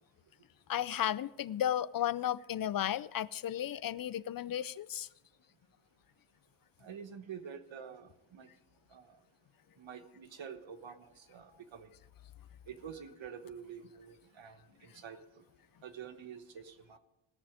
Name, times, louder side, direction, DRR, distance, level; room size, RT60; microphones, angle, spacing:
voice 1, 0.7-5.1, left 11 dB, 50° left, 0.4 m, -34 dB
voice 2, 6.8-8.5 8.9-9.1 9.8-11.9 12.7-15.4 15.8-17.0, right 7 dB, 65° right, 1.2 m, -48 dB
19.0 x 6.9 x 5.0 m
cardioid pair, 80°, 49 cm